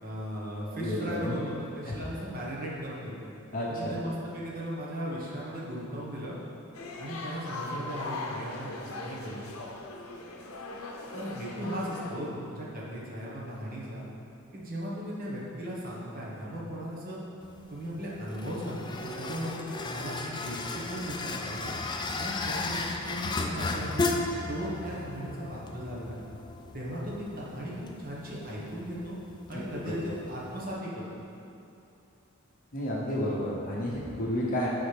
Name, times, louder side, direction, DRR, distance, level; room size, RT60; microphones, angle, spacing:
voice 1, 0.0-3.1 3.7-6.3 7.0-9.4 11.1-14.0 14.5-17.2 17.7-21.7 22.2-24.2 24.5-26.2 26.7-29.2 29.5-30.0 30.3-31.1, equal, 45° right, -6 dB, 1.3 m, -37 dB
voice 2, 0.8-1.3 1.9-2.0 3.5-4.0 29.5-29.7 30.0-30.1 32.7-34.7, equal, 40° left, -5 dB, 0.9 m, -31 dB
sound 1, 6.7-12.1, left 2 dB, 80° left, 0.7 m, -39 dB
sound 2, 17.4-30.8, left 3 dB, 20° left, 0.3 m, -35 dB
9.8 x 4.1 x 3.4 m, 2.7 s
head